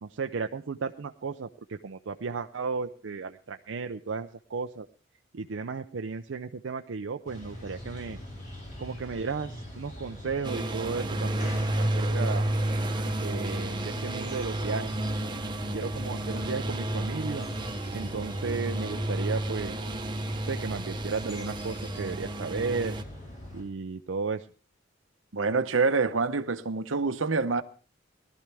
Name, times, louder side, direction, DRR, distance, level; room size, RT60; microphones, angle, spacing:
voice 1, 0.0-4.9 5.3-8.2 8.8-12.5 13.2-14.9 15.7-17.5 17.9-19.8 20.5-23.0 23.5-24.5, right 4 dB, 70° right, 0.5 m, -34 dB
sound 1, 7.3-23.6, equal, 45° left, 4.7 m, -43 dB
sound 2, 10.4-23.0, right 1 dB, 25° right, 1.0 m, -31 dB
voice 2, 25.3-27.6, right 4 dB, 85° right, 0.9 m, -26 dB
18.0 x 12.5 x 3.4 m
head